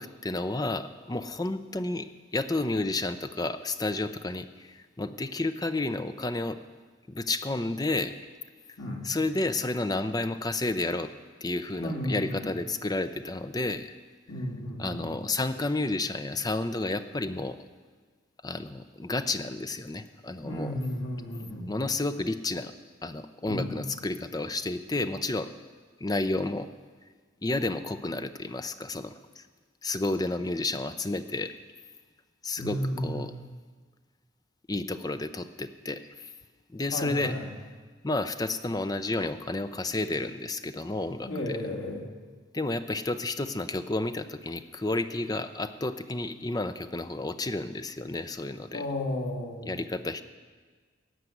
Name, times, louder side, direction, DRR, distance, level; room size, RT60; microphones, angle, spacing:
voice 1, 0.0-6.6 7.1-8.1 9.0-11.1 11.4-13.9 14.8-17.6 18.4-20.7 21.7-22.7 23.0-25.5 26.0-26.7 27.4-29.4 29.8-31.5 32.4-33.3 34.7-36.3 36.7-37.3 38.0-41.6 42.5-48.8 49.6-50.2, left 2 dB, 20° left, 10 dB, 0.5 m, -31 dB
voice 2, 8.8-9.1 11.8-12.5 14.3-15.2 20.4-21.8 23.5-23.7 32.6-33.5 36.9-37.5 41.3-42.1 48.7-49.8, left 1 dB, 85° left, -1 dB, 2.8 m, -33 dB
17.5 x 6.7 x 9.3 m, 1.5 s
head